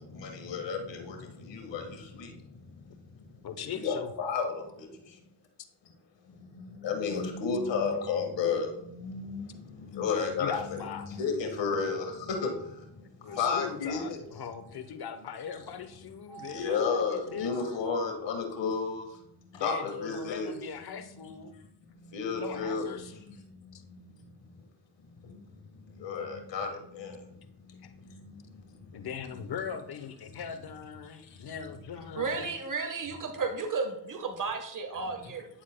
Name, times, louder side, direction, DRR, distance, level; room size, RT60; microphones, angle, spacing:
voice 1, 0.0-5.2 6.2-14.6 16.3-20.6 22.0-24.2 25.2-29.1 31.2-31.5, left 5 dB, 75° left, 3 dB, 1.6 m, -34 dB
voice 2, 3.4-4.1 10.4-11.1 13.0-17.5 19.5-21.5 22.3-23.2 23.7-23.8 27.8-27.9 28.9-32.5, left 7 dB, 60° left, 9 dB, 1.0 m, -40 dB
voice 3, 32.2-35.5, right 4 dB, 45° right, 5 dB, 1.3 m, -33 dB
10.0 x 7.2 x 2.2 m, 0.77 s
cardioid pair, 65°, 43 cm